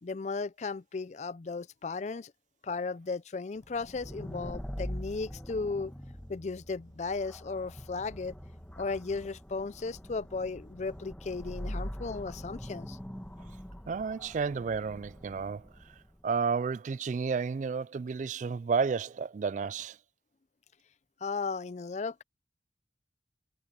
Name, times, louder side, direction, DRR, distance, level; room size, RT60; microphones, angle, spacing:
voice 1, 0.0-2.3 2.6-5.9 6.3-8.3 8.8-13.0 21.2-22.2, left 4 dB, 40° left, 0.4 m, -35 dB
sound 1, 3.6-16.2, equal, 5° left, 1.2 m, -43 dB
sound 2, 4.6-9.7, equal, 25° left, 4.6 m, -54 dB
voice 2, 13.9-15.7 16.2-20.0, right 5 dB, 45° right, 0.3 m, -31 dB
head